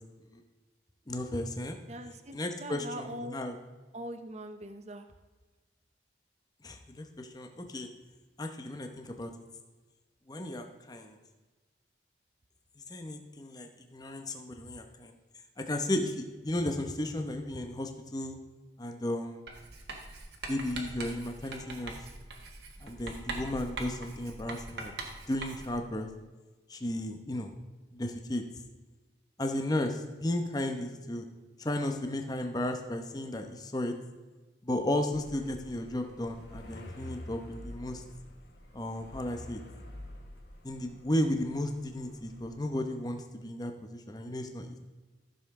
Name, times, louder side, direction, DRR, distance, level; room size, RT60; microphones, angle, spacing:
voice 1, 1.1-1.8 2.3-3.5 6.6-7.9 8.4-9.3 10.3-11.2 12.9-15.1 15.6-18.4 18.8-19.4 20.5-22.0 22.8-24.9 25.3-26.1 26.7-27.5 27.9-28.4 29.4-31.2 31.6-33.9 34.6-38.0 38.7-39.6 40.6-44.8, left 1 dB, 20° left, 5 dB, 0.9 m, -34 dB
voice 2, 1.9-3.4 3.9-5.1, right 1 dB, 35° right, 8 dB, 0.7 m, -42 dB
Writing, 19.5-25.9, right 2 dB, 70° right, 1.5 m, -42 dB
sound 1, 35.1-42.6, left 1 dB, 65° left, 1.5 m, -48 dB
13.5 x 6.9 x 3.7 m, 1.3 s
head